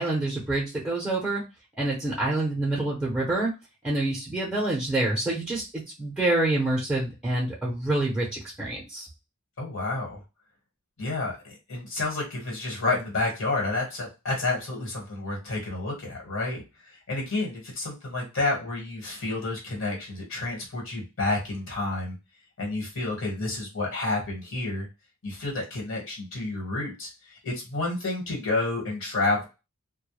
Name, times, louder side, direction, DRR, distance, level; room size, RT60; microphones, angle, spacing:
voice 1, 0.0-1.4 1.8-3.5 3.8-9.1, right 2 dB, 5° right, -5 dB, 0.6 m, -27 dB
voice 2, 9.6-10.2 11.0-16.6 17.1-22.1 22.6-24.9 25.2-29.5, left 2 dB, 65° left, -1 dB, 1.2 m, -30 dB
2.2 x 2.1 x 2.9 m, 0.26 s
head